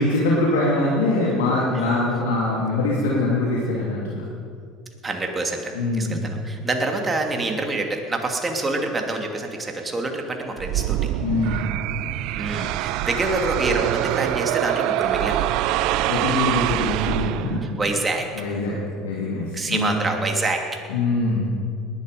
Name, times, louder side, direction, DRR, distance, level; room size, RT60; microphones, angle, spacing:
voice 1, 0.0-4.2 5.7-6.2 11.2-11.7 16.1-17.6 18.3-19.9 20.9-21.6, left 2 dB, 80° left, -5 dB, 2.8 m, -23 dB
voice 2, 5.0-11.1 12.4-15.4 17.6-18.3 19.5-20.6, right 2 dB, 25° right, 2 dB, 2.8 m, -26 dB
sound 1, 10.6-17.8, right 13 dB, 65° right, 0.5 m, -24 dB
20.0 x 11.5 x 5.3 m, 2.3 s
hypercardioid pair, 75°, 0 cm